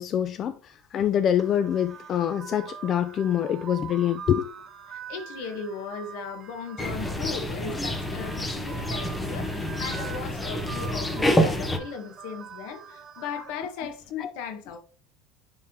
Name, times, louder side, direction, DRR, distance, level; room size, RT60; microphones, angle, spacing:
voice 1, 0.0-4.5 14.2-14.3, left 10 dB, 35° left, 0.4 m, -25 dB
sound 1, 1.4-13.5, right 7 dB, 25° right, 2.7 m, -43 dB
voice 2, 4.9-14.8, left 6 dB, 65° left, 1.3 m, -37 dB
sound 2, 6.8-11.8, equal, 10° left, 0.8 m, -27 dB
10.0 x 3.6 x 2.9 m
supercardioid pair, 145°, 0 cm